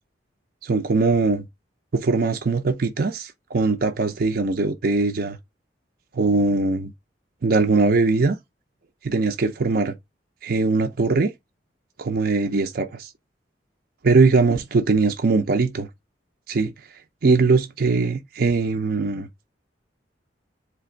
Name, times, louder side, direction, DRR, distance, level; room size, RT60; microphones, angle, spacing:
voice 1, 0.6-1.4 1.9-5.4 6.1-6.9 7.4-8.4 9.0-9.9 10.4-11.3 12.0-13.1 14.0-15.9 16.5-16.7 17.2-19.3, right 3 dB, 55° right, 0.5 m, -21 dB
3.9 x 3.3 x 3.8 m
head